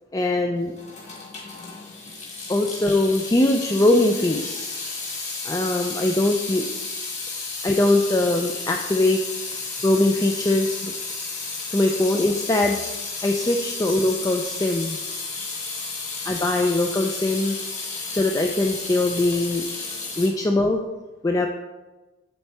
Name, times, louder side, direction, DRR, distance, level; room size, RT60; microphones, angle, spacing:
voice 1, 0.1-0.7 2.5-4.7 5.4-6.7 7.6-9.2 9.8-10.9 11.7-12.8 13.2-15.0 16.3-17.6 18.1-19.7 20.2-20.8 21.2-21.5, left 2 dB, 15° left, 3 dB, 0.4 m, -21 dB
Water tap faucet / Sink (filling or washing) / Drip, 0.7-20.3, left 3 dB, 35° left, 1.8 m, -32 dB
7.6 x 7.1 x 3.4 m, 1.1 s
head